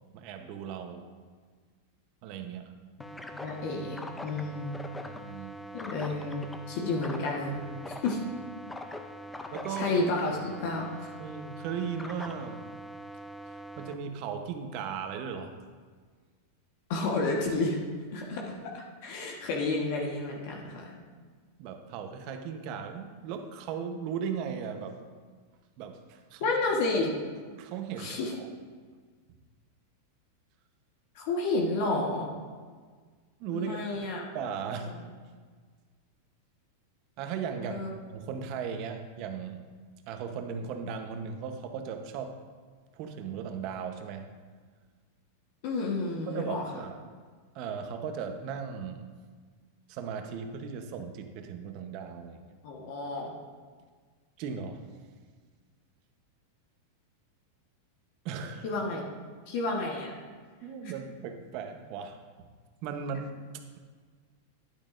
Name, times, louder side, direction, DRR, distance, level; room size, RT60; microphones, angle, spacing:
voice 1, 0.1-1.0 2.2-2.7 5.0-5.6 9.5-9.9 11.2-12.6 13.5-15.5 21.6-25.0 25.8-26.5 27.5-28.5 33.4-34.9 37.2-37.8 38.1-39.7 40.1-42.4 42.9-44.3 46.3-46.9 47.5-49.1 49.9-52.5 54.4-54.9 58.2-58.6 60.6-62.5 62.8-63.8, right 6 dB, 50° right, 6 dB, 0.9 m, -37 dB
sound 1, 3.0-13.9, equal, 10° left, 0.5 m, -43 dB
voice 2, 3.3-4.8 5.7-7.6 7.9-8.2 9.8-11.1 16.9-17.8 18.1-21.0 26.4-27.1 28.0-28.4 31.1-32.3 33.5-34.2 34.7-35.0 37.7-37.9 45.6-46.6 52.6-53.3 58.6-59.0 59.5-60.2, left 2 dB, 60° left, -1 dB, 1.3 m, -31 dB
10.5 x 9.0 x 2.6 m, 1.5 s
hypercardioid pair, 125°, 0 cm